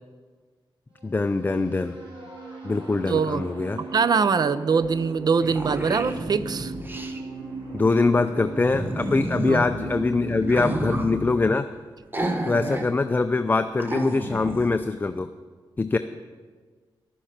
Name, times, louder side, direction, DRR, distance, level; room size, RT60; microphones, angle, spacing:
voice 1, 1.0-2.0 2.6-3.8 7.7-11.7 12.4-15.3 15.8-16.0, left 3 dB, 20° left, 9 dB, 0.5 m, -23 dB
sound 1, 1.0-11.3, right 2 dB, 70° right, 3.3 m, -37 dB
voice 2, 3.1-3.4 3.8-6.7 9.5-9.6, right 5 dB, 50° right, 15 dB, 0.6 m, -23 dB
sound 2, 4.8-4.9 5.2-7.2 8.7-9.6 10.4-11.2 12.1-12.9 13.2-13.3 13.8-14.7, right 1 dB, 25° right, 1.2 m, -31 dB
12.5 x 10.0 x 5.8 m, 1.5 s
cardioid pair, 90°, 9 cm